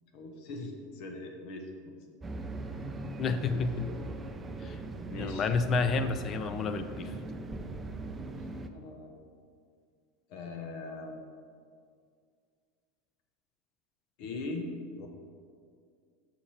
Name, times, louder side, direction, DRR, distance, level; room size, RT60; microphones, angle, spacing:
voice 1, 0.1-2.0 5.1-5.5 8.2-9.1 10.3-11.3 14.2-14.7 15.0-15.1, left 2 dB, 60° left, 3 dB, 0.9 m, -41 dB
sound 1, 2.2-8.7, right 2 dB, 20° right, 0.4 m, -40 dB
voice 2, 3.2-3.9 4.6-4.8 5.2-7.1, left 4 dB, 35° left, 10 dB, 0.5 m, -30 dB
6.4 x 5.8 x 4.3 m, 2.2 s
supercardioid pair, 120°, 0 cm